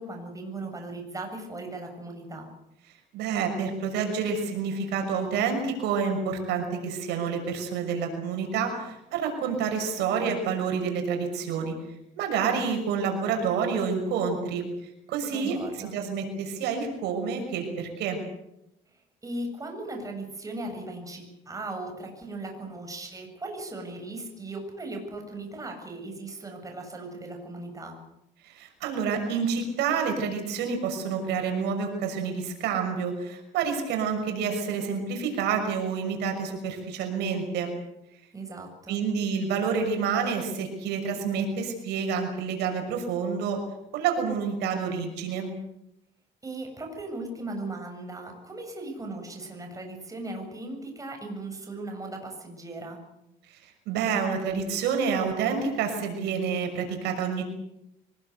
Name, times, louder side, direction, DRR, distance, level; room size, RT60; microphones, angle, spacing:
voice 1, 0.0-2.5 15.3-16.0 18.9-28.0 38.3-39.0 46.4-53.0, right 2 dB, 20° right, 3 dB, 7.7 m, -38 dB
voice 2, 3.1-11.7 12.2-14.7 15.1-18.2 28.4-37.7 38.9-43.6 43.9-45.5 53.5-57.4, right 6 dB, 85° right, 4 dB, 6.2 m, -28 dB
24.5 x 21.5 x 8.2 m, 0.86 s
cardioid pair, 110°, 17 cm